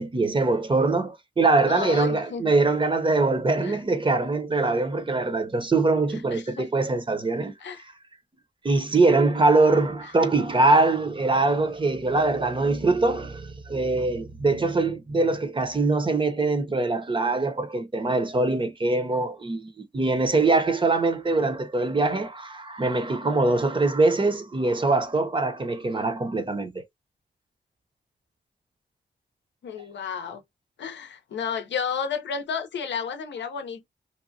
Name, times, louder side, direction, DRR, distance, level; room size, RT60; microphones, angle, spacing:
voice 1, 0.0-7.5 8.6-26.8, right 3 dB, 25° right, 0.7 m, -23 dB
voice 2, 1.7-2.5 3.6-3.8 6.3-6.7 7.6-7.8 29.6-30.4 30.8-33.8, left 6 dB, 85° left, 0.6 m, -32 dB
3.0 x 2.2 x 2.5 m
cardioid pair, 75°, 18 cm